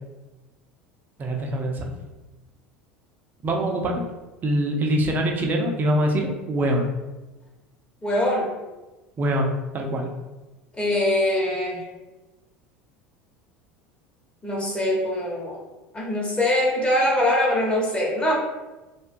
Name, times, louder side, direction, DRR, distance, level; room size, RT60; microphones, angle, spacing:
voice 1, 1.2-1.9 3.4-4.0 4.4-6.9 9.2-10.1, right 1 dB, 30° right, 1 dB, 0.5 m, -24 dB
voice 2, 8.0-8.5 10.7-11.8 14.4-15.6 15.9-18.3, left 1 dB, 20° left, -3 dB, 0.9 m, -23 dB
2.4 x 2.2 x 2.5 m, 1.1 s
hypercardioid pair, 75°, 6 cm